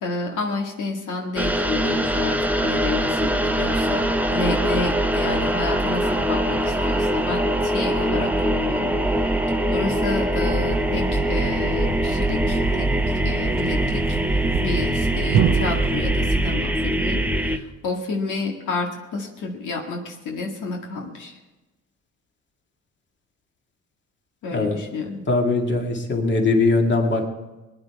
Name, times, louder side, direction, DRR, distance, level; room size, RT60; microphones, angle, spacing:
voice 1, 0.0-2.4 2.6-9.0 9.7-12.9 13.2-21.4 24.4-25.3, left 3 dB, 80° left, 1 dB, 1.9 m, -30 dB
sound 1, 1.4-17.6, right 1 dB, 5° right, 0.8 m, -22 dB
Thump thud, 10.5-16.7, right 8 dB, 60° right, 0.8 m, -29 dB
voice 2, 25.3-27.3, left 3 dB, 40° left, 2 dB, 2.3 m, -21 dB
20.0 x 9.9 x 4.6 m, 1.1 s
cardioid pair, 90°, 30 cm